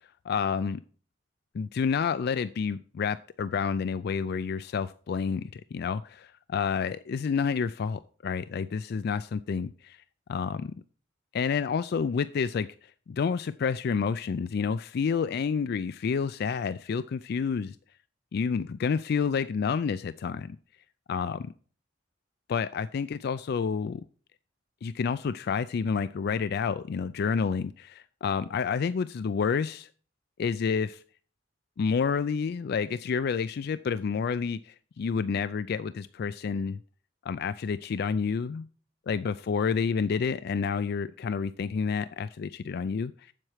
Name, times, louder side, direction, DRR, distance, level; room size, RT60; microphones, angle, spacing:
voice 1, 0.2-0.8 1.5-10.0 10.3-10.7 11.3-17.8 18.3-20.6 21.1-21.5 22.5-24.0 24.8-29.9 30.4-31.0 31.8-36.8 37.2-38.7 39.1-43.3, left 6 dB, 55° left, 0.3 m, -29 dB
7.7 x 7.6 x 4.8 m
head